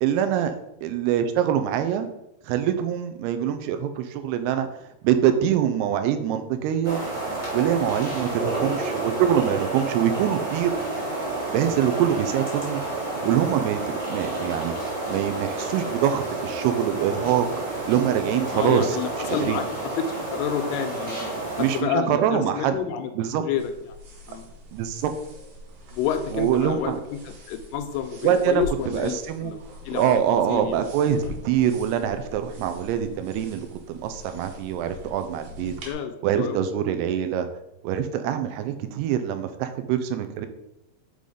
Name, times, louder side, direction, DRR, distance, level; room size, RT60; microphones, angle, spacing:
voice 1, 0.0-0.5 0.8-2.1 2.5-4.7 5.0-7.0 7.5-10.9 11.5-14.7 15.1-17.5 17.8-19.0 19.5-19.6 21.6-22.7 23.2-23.5 24.7-25.1 26.3-27.0 28.2-29.5 29.9-35.7 36.2-37.5 37.8-40.5, right 9 dB, 85° right, 8 dB, 2.6 m, -24 dB
sound 1, 6.8-21.8, right 2 dB, 40° right, 0.4 m, -30 dB
voice 2, 18.5-23.1 23.4-24.0 24.3-24.4 25.9-29.6 29.9-30.1 30.5-30.8 35.8-36.7, left 8 dB, 85° left, 7 dB, 2.5 m, -29 dB
sound 2, 23.6-35.9, left 3 dB, 60° right, 2.9 m, -43 dB
6.9 x 3.9 x 4.9 m, 0.85 s
omnidirectional pair, 4.7 m